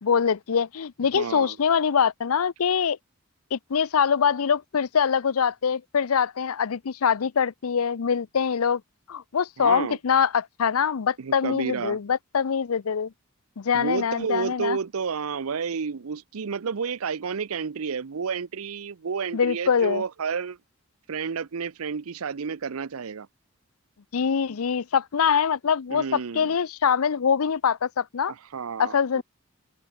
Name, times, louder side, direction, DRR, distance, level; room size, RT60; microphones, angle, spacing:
voice 1, 0.0-3.0 3.5-8.8 9.1-13.1 13.6-14.8 19.3-20.0 24.1-28.3 28.8-29.2, left 6 dB, 90° left, 0.6 m, -24 dB
voice 2, 1.1-1.6 9.6-10.0 11.2-12.0 13.7-20.6 21.1-23.3 25.9-26.5 28.3-29.2, right 5 dB, 90° right, 0.6 m, -31 dB
open air
head